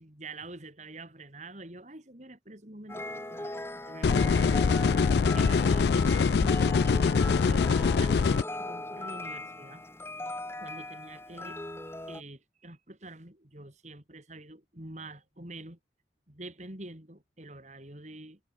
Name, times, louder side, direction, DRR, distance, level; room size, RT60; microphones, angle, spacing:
voice 1, 0.0-3.6 3.9-4.6 4.9-6.6 7.0-9.9 10.2-15.8 16.3-18.4, right 2 dB, 40° right, 3.8 m, -46 dB
sound 1, 2.9-12.2, left 1 dB, 15° left, 2.5 m, -38 dB
sound 2, 4.0-8.4, left 5 dB, 65° left, 0.4 m, -24 dB
head